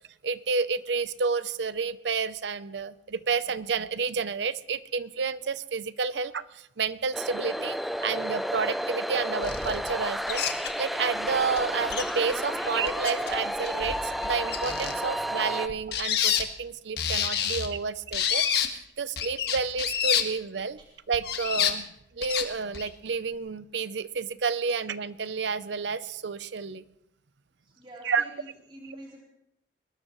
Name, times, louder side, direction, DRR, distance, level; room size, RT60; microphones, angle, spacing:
voice 1, 0.2-10.4 10.8-20.8 21.1-21.9 22.2-26.8 28.0-28.2, right 5 dB, 70° right, 15 dB, 0.6 m, -30 dB
sound 1, 7.1-15.7, equal, ahead, 0.5 m, -31 dB
sound 2, 9.4-9.9 10.3-10.7 11.3-11.4 11.6-11.7 11.9-12.3 12.7-13.4 13.6-14.9 15.7-16.4 17.0-17.7 18.1-18.7 19.2-20.2 21.1-21.7 22.2-22.4 22.7-22.9, left 9 dB, 60° left, 1.6 m, -28 dB
voice 2, 27.6-29.2, right 1 dB, 30° right, -3 dB, 3.7 m, -47 dB
22.0 x 19.5 x 3.1 m, 0.82 s
head